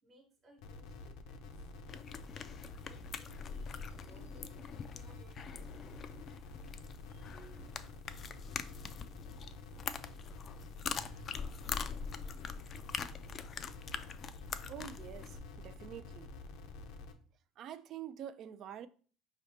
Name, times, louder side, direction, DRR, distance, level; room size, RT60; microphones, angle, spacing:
voice 1, 0.0-1.7 2.8-5.7, right 1 dB, 35° right, 1.1 m, -64 dB
sound 1, 0.6-17.1, left 3 dB, 75° left, 0.6 m, -49 dB
sound 2, 1.9-15.4, left 6 dB, 35° left, 0.3 m, -44 dB
sound 3, 3.8-5.7 6.3-9.2 9.6-9.7 10.8-12.9, right 6 dB, 70° right, 0.9 m, -63 dB
voice 2, 14.7-16.3 17.6-18.9, right 10 dB, 50° right, 0.3 m, -46 dB
4.8 x 2.8 x 3.3 m
cardioid pair, 120°, 0 cm